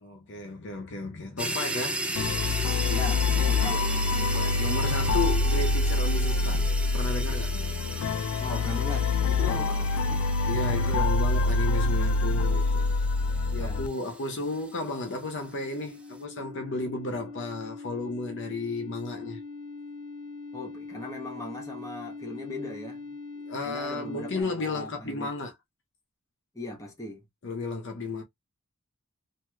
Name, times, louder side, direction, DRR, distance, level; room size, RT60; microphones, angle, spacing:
voice 1, 0.0-2.6 4.2-6.7 6.9-7.6 9.5-9.7 10.5-13.0 13.6-19.4 23.5-25.5 27.4-28.2, left 3 dB, 55° left, 0.7 m, -33 dB
sound 1, 1.4-15.0, right 2 dB, 5° right, 0.4 m, -36 dB
sound 2, 2.2-13.9, left 3 dB, 85° left, 0.3 m, -26 dB
voice 2, 2.9-3.9 8.4-10.3 10.8-11.1 13.5-13.8 20.5-23.1 23.6-25.3 26.5-27.2, left 1 dB, 15° left, 1.0 m, -39 dB
sound 3, 14.2-24.4, left 3 dB, 40° right, 1.2 m, -42 dB
3.0 x 2.7 x 2.2 m
head